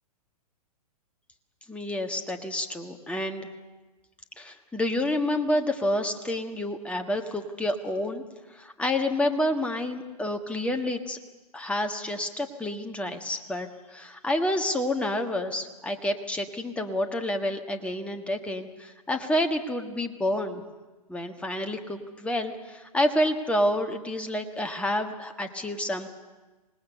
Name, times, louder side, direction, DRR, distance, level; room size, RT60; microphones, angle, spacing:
voice 1, 1.7-3.5 4.4-8.2 8.5-11.2 11.5-20.6 21.1-26.1, left 1 dB, 5° left, 5 dB, 1.5 m, -29 dB
25.5 x 19.5 x 6.9 m, 1.2 s
figure-of-eight pair, 115°, 20 cm